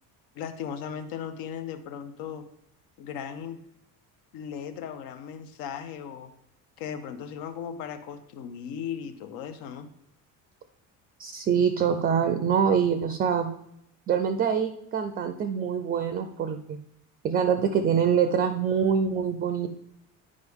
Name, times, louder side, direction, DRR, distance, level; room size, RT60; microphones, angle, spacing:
voice 1, 0.3-2.5 3.0-3.6 4.3-6.3 6.8-9.9, left 8 dB, 90° left, 9 dB, 0.9 m, -37 dB
voice 2, 11.2-13.5 14.1-16.8 17.2-19.7, right 7 dB, 25° right, 8 dB, 0.3 m, -25 dB
9.7 x 5.2 x 3.5 m, 0.78 s
cardioid pair, 175°, 34 cm